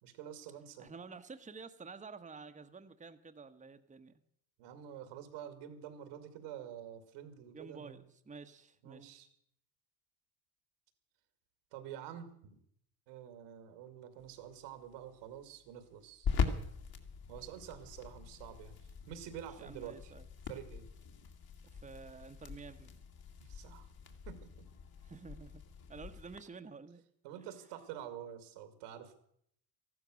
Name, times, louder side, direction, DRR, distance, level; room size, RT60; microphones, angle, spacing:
voice 1, 0.0-0.9 4.6-8.0 8.8-9.3 11.7-12.6 13.1-16.3 17.3-20.1 20.5-20.8 23.4-23.9 24.3-24.7 27.2-29.2, right 10 dB, 80° right, 9 dB, 2.4 m, -48 dB
voice 2, 0.8-4.2 7.5-9.2 19.6-20.3 21.7-22.9 25.0-25.6 25.9-27.0 27.4-27.5, right 4 dB, 15° right, 7 dB, 1.0 m, -50 dB
sound 1, 14.2-26.4, left 5 dB, 50° left, 2.4 m, -42 dB
14.5 x 12.0 x 6.3 m, 0.69 s
supercardioid pair, 80°, 47 cm